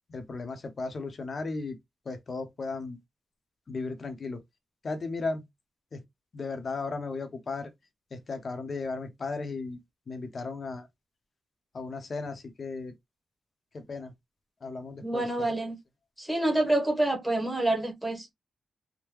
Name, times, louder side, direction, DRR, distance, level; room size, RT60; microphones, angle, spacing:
voice 1, 0.1-1.8 2.1-3.0 3.7-4.4 4.8-5.4 5.9-6.0 6.3-7.7 8.1-9.8 10.1-10.9 11.7-12.9 13.7-14.1 14.6-15.5, left 3 dB, 45° left, 0.8 m, -35 dB
voice 2, 15.0-15.7 16.2-18.3, right 1 dB, ahead, 1.1 m, -27 dB
3.6 x 2.1 x 3.0 m
wide cardioid pair, 110°, 0 cm